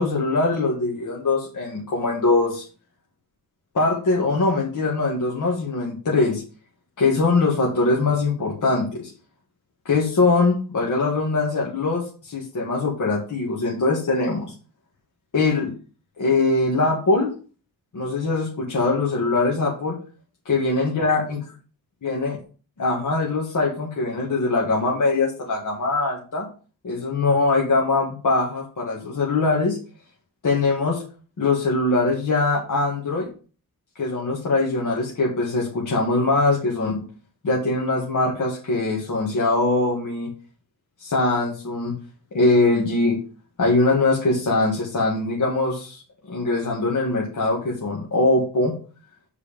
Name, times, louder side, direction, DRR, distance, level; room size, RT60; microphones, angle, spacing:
voice 1, 0.0-2.7 3.7-6.4 7.0-9.1 9.9-14.5 15.3-15.7 16.2-17.3 17.9-20.0 20.5-21.4 22.0-22.4 22.8-26.5 26.8-29.8 30.4-31.0 31.4-33.3 34.0-37.0 37.4-40.3 41.0-41.9 42.3-43.2 43.6-46.0 46.3-48.7, left 3 dB, 60° left, -3 dB, 1.9 m, -22 dB
7.1 x 4.8 x 5.2 m, 0.38 s
wide cardioid pair, 110°, 35 cm